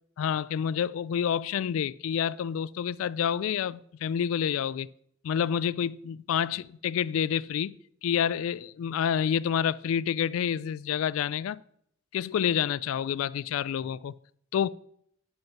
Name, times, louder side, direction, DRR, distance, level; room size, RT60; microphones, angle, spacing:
voice 1, 0.2-4.9 5.2-7.7 8.0-11.6 12.1-14.1 14.5-14.7, left 8 dB, 85° left, 0.3 m, -28 dB
11.0 x 5.3 x 5.9 m
head